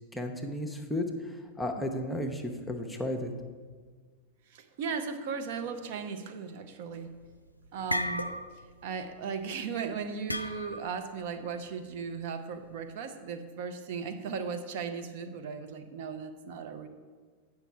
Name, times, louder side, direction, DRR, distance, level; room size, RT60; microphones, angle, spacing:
voice 1, 0.1-3.3, left 1 dB, 5° left, 3 dB, 0.8 m, -34 dB
voice 2, 4.5-7.1 7.7-8.3 8.8-16.9, right 5 dB, 50° right, 8 dB, 0.7 m, -37 dB
sound 1, 7.0-7.3 7.6-8.7 9.0-9.3 10.3-11.0, left 1 dB, 85° left, 0.3 m, -34 dB
9.1 x 5.7 x 4.4 m, 1.5 s
figure-of-eight pair, 90°, 0 cm